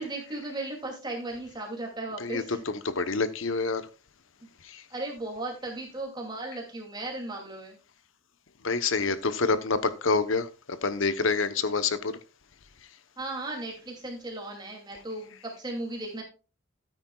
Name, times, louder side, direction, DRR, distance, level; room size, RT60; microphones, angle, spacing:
voice 1, 0.0-2.6 4.9-7.8 13.2-16.2, right 2 dB, 20° right, 2.6 m, -36 dB
voice 2, 2.8-3.8 8.6-10.5 10.8-12.1, left 4 dB, 75° left, 0.9 m, -26 dB
13.5 x 9.5 x 2.3 m
head